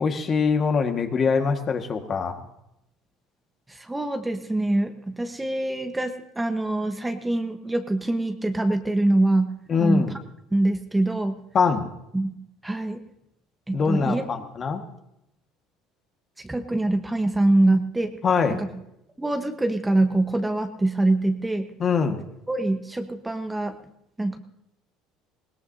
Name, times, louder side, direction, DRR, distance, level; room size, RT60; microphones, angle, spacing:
voice 1, 0.0-2.4 9.7-10.1 11.5-11.8 13.7-14.8 18.2-18.6 21.8-22.2, left 5 dB, 40° left, 5 dB, 1.7 m, -23 dB
voice 2, 3.7-9.5 9.8-10.1 10.5-11.4 12.1-12.3 12.6-13.0 13.7-14.5 16.4-18.1 18.5-18.7 19.2-21.7 22.5-23.7 24.2-24.4, right 2 dB, 10° right, 7 dB, 1.1 m, -24 dB
20.5 x 17.5 x 2.8 m, 0.82 s
supercardioid pair, 90°, 0 cm